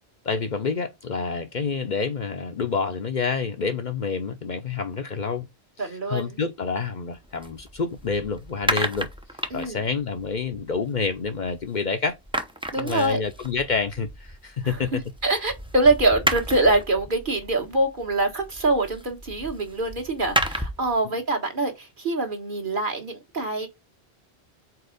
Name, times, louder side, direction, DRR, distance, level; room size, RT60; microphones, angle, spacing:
voice 1, 0.2-5.5 5.8-9.1 9.5-12.2 12.8-15.0, left 5 dB, 50° left, 0.8 m, -28 dB
voice 2, 5.8-6.4 9.5-9.8 12.7-13.2 14.6-14.8 15.2-23.7, right 2 dB, 50° right, 1.7 m, -24 dB
sound 1, 7.1-11.8 12.1-20.9, right 1 dB, 5° right, 0.6 m, -32 dB
4.6 x 4.3 x 5.0 m
omnidirectional pair, 1.1 m